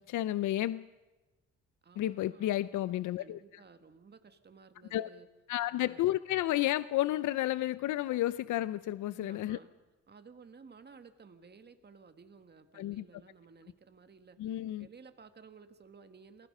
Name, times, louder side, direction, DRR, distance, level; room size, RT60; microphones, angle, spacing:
voice 1, 0.1-0.9 2.0-3.4 4.9-5.1 5.5-9.6 12.7-13.0 14.4-14.9, left 14 dB, 75° left, 15 dB, 0.6 m, -31 dB
voice 2, 1.8-2.5 3.2-5.3 5.6-6.0 9.1-9.7 10.1-16.5, right 5 dB, 35° right, 8 dB, 1.8 m, -56 dB
29.0 x 20.0 x 5.5 m, 1.1 s
cardioid pair, 90°, 30 cm